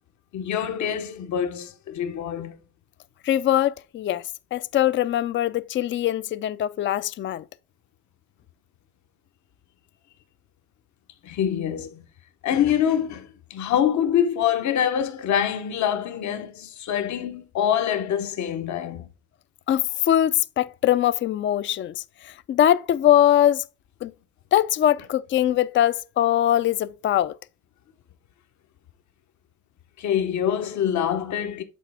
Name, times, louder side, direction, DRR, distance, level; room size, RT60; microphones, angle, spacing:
voice 1, 0.3-2.6 11.2-12.0 12.4-19.1 30.0-31.6, left 9 dB, 70° left, 0.9 m, -25 dB
voice 2, 3.2-7.4 19.7-23.6 24.0-24.1 24.5-27.4, left 12 dB, 40° left, 0.4 m, -22 dB
8.4 x 4.0 x 3.4 m
cardioid pair, 90°, 30 cm